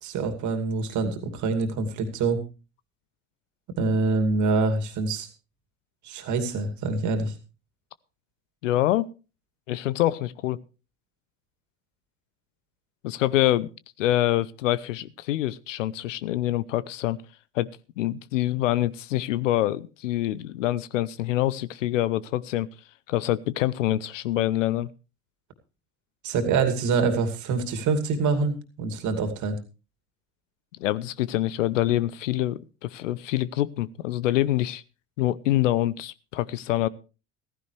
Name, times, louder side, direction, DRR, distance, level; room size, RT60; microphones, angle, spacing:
voice 1, 0.0-2.4 3.8-5.3 6.0-7.3 26.2-29.6, right 4 dB, 50° right, 7 dB, 2.6 m, -25 dB
voice 2, 8.6-9.1 9.7-10.6 13.0-13.7 14.0-17.2 17.5-17.7 18.0-22.7 23.1-24.9 30.8-34.8 35.2-36.9, left 14 dB, 75° left, 19 dB, 0.7 m, -25 dB
15.0 x 15.0 x 3.3 m, 0.33 s
figure-of-eight pair, 65°, 38 cm